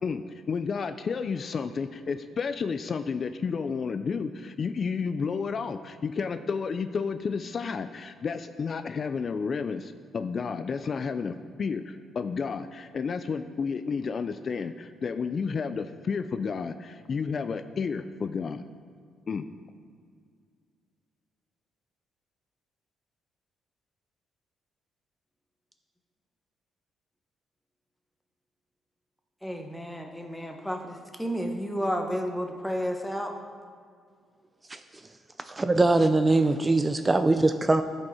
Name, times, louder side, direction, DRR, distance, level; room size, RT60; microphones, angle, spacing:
voice 1, 0.0-18.6 19.3-19.5, left 5 dB, 45° left, 0.4 m, -31 dB
voice 2, 29.4-33.3, equal, 5° left, 1.1 m, -32 dB
voice 3, 35.5-37.8, right 2 dB, 20° right, 0.4 m, -22 dB
14.0 x 5.4 x 4.3 m
cardioid pair, 90°, 0 cm